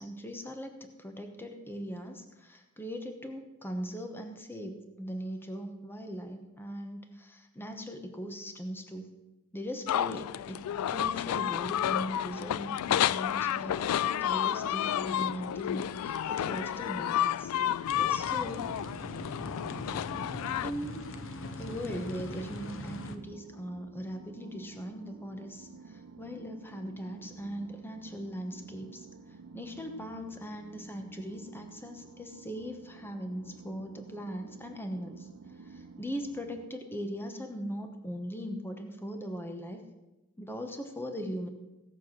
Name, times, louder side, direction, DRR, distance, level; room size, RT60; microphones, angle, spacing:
voice 1, 0.0-9.1 9.5-17.5 18.1-18.7 20.6-21.1 21.6-29.1 29.5-35.3 35.6-39.8 40.4-41.5, equal, 10° left, 5 dB, 1.1 m, -40 dB
sound 1, 9.9-20.7, left 10 dB, 90° left, 0.3 m, -31 dB
sound 2, 17.8-23.2, left 2 dB, 65° left, 0.9 m, -41 dB
sound 3, 18.2-36.7, right 4 dB, 80° right, 0.6 m, -51 dB
16.5 x 7.1 x 6.2 m, 1.0 s
head